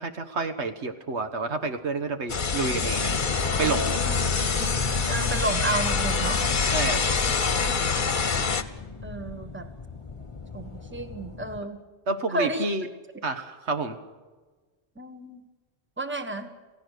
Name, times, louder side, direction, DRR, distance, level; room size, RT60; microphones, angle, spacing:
voice 1, 0.0-3.1 3.6-3.9 6.7-7.0 12.1-12.9 13.2-14.0, right 3 dB, 80° right, 8 dB, 1.6 m, -29 dB
sound 1, 2.3-8.6, left 5 dB, 50° left, 1.2 m, -25 dB
sound 2, 2.8-11.6, left 3 dB, 30° left, 1.1 m, -37 dB
voice 2, 5.1-6.4 9.0-9.7 10.5-11.8 12.3-12.6 15.0-15.4 16.0-16.5, right 2 dB, 10° right, 7 dB, 1.4 m, -31 dB
28.5 x 16.0 x 6.6 m, 1.3 s
omnidirectional pair, 1.1 m